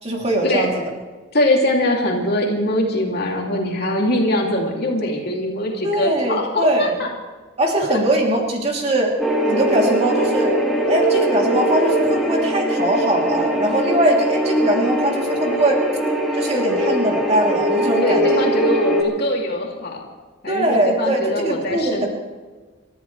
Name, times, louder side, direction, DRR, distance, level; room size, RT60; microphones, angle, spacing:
voice 1, 0.0-0.8 5.8-7.0 7.6-9.1 9.5-10.5 10.9-15.8 16.3-18.5 20.5-22.1, right 1 dB, 35° right, -1 dB, 3.3 m, -21 dB
voice 2, 1.3-7.1 7.6-8.0 18.0-20.0 20.4-22.1, left 1 dB, 55° left, -1 dB, 2.9 m, -22 dB
sound 1, 9.2-19.0, equal, ahead, 3.2 m, -21 dB
29.5 x 14.0 x 3.4 m, 1.3 s
head